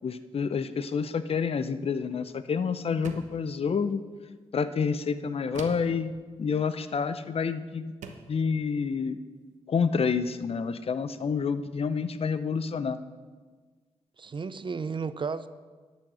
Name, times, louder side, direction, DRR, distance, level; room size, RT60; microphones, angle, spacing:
voice 1, 0.0-4.0 4.5-6.1 6.4-7.9 8.3-9.2 9.7-13.0, left 5 dB, 55° left, 13 dB, 0.6 m, -28 dB
sound 1, 3.0-3.5 5.5-6.0 7.3-7.5 8.0-8.4, right 5 dB, 90° right, 0.9 m, -42 dB
voice 2, 14.2-15.5, right 5 dB, 40° right, 13 dB, 0.5 m, -33 dB
11.5 x 6.3 x 6.3 m, 1.4 s
cardioid pair, 50°, 12 cm